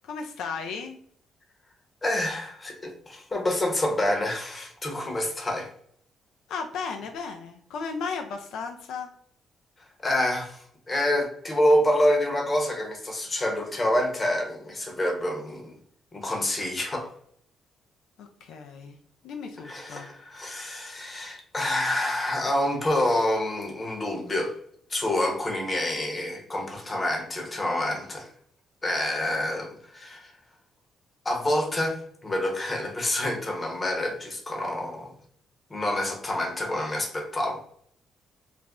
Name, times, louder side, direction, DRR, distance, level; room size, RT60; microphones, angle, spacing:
voice 1, 0.0-1.0 6.5-9.1 18.2-19.0 19.2-20.1, left 5 dB, 80° left, 4 dB, 0.3 m, -35 dB
voice 2, 2.0-5.7 10.0-15.8 16.1-17.1 19.6-24.5 24.9-28.3 28.8-30.3 31.2-35.1 35.7-37.6, left 1 dB, 25° left, 2 dB, 0.8 m, -27 dB
2.4 x 2.0 x 3.5 m, 0.64 s
cardioid pair, 90°, 0 cm